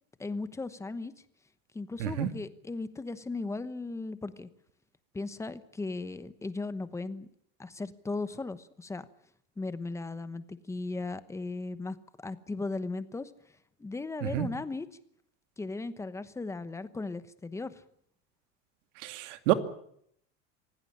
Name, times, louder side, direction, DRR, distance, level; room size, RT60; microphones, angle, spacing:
voice 1, 0.2-1.1 1.7-4.5 5.1-7.3 7.6-9.1 9.6-13.3 13.8-14.9 15.6-17.8, left 3 dB, 10° left, 13 dB, 1.0 m, -37 dB
voice 2, 2.0-2.3 14.2-14.5 19.0-19.5, right 14 dB, 85° right, 9 dB, 2.5 m, -29 dB
25.5 x 17.0 x 8.6 m, 0.69 s
cardioid pair, 165°, 36 cm